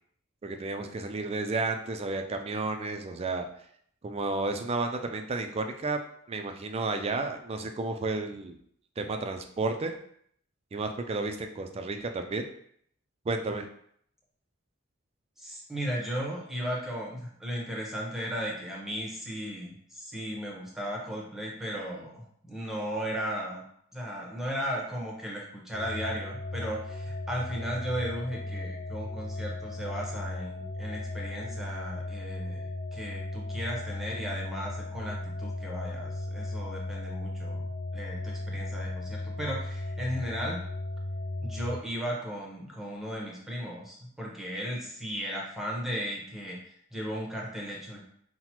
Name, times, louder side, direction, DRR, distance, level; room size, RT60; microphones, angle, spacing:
voice 1, 0.4-3.5 4.0-6.0 6.3-8.6 9.0-9.9 10.7-12.4 13.3-13.7, right 3 dB, 30° right, 6 dB, 0.3 m, -32 dB
voice 2, 15.4-23.6 23.9-40.6 41.4-46.6 46.9-48.0, equal, ahead, -3 dB, 0.9 m, -36 dB
sound 1, 25.7-41.8, left 2 dB, 65° left, 0.5 m, -36 dB
5.7 x 2.1 x 2.9 m, 0.67 s
head